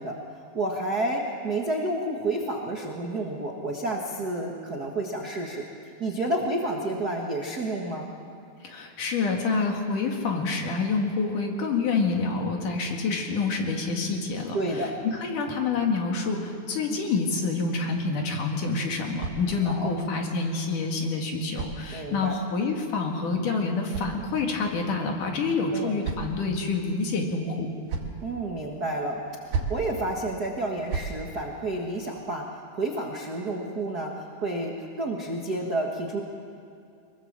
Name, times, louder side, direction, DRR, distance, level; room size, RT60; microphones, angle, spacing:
voice 1, 0.0-8.1 14.5-14.9 19.6-19.9 21.9-22.3 25.7-26.0 28.2-36.2, right 2 dB, 55° right, 0 dB, 1.1 m, -30 dB
voice 2, 8.6-27.7, left 4 dB, 55° left, 2 dB, 3.2 m, -27 dB
sound 1, 18.8-19.9 20.9-22.4 23.4-24.7 25.5-26.6 27.5-28.2 29.2-29.9 30.6-31.2, right 5 dB, 70° right, 3.9 m, -36 dB
23.5 x 21.5 x 7.5 m, 2.5 s
omnidirectional pair, 4.7 m